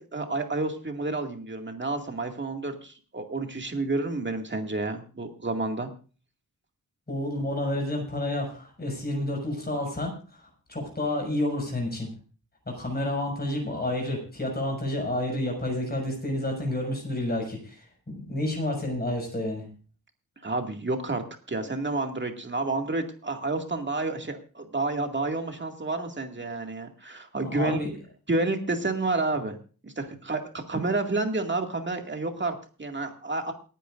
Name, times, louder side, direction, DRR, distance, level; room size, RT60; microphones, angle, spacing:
voice 1, 0.0-5.9 20.4-27.8 28.3-29.6 29.8-33.5, right 2 dB, 30° right, 4 dB, 2.2 m, -30 dB
voice 2, 7.1-10.1 10.7-12.1 12.7-19.7 27.4-27.9, left 1 dB, 25° left, 0 dB, 6.1 m, -30 dB
28.5 x 9.9 x 2.5 m, 0.38 s
wide cardioid pair, 145°, 36 cm